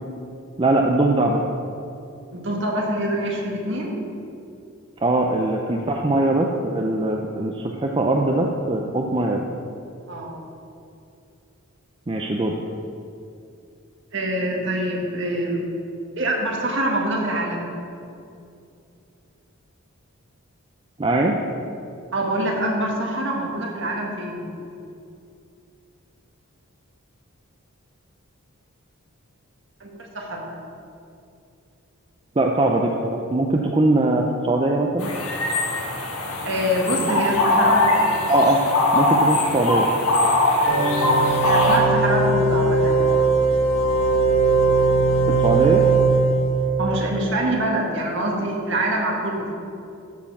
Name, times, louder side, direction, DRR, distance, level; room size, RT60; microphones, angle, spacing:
voice 1, 0.6-1.4 5.0-9.5 12.1-12.6 21.0-21.4 32.4-35.1 38.3-38.6 38.9-39.9 45.3-45.8, right 2 dB, 25° right, 1 dB, 0.4 m, -21 dB
voice 2, 2.3-3.9 10.1-10.4 14.1-15.6 16.2-17.7 22.1-24.5 29.8-30.5 36.5-38.2 40.5-40.7 41.4-43.2 46.8-49.5, right 1 dB, 55° right, -1 dB, 1.6 m, -25 dB
sound 1, 35.0-41.8, left 2 dB, 80° left, 1.5 m, -21 dB
sound 2, 40.6-46.8, right 3 dB, 60° left, 1.9 m, -19 dB
13.0 x 4.4 x 5.9 m, 2.6 s
head